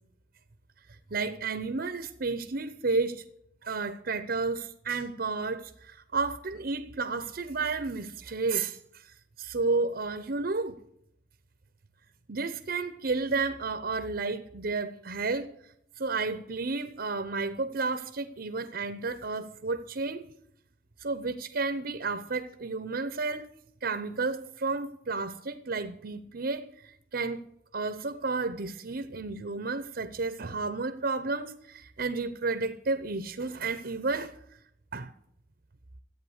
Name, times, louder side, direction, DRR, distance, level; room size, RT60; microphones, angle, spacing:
voice 1, 1.1-3.2 3.6-10.8 12.3-15.5 16.0-20.2 21.0-23.5 23.8-27.5 27.7-34.3 34.9-35.1, right 3 dB, 50° right, 0.8 m, -32 dB
13.5 x 8.8 x 8.0 m
head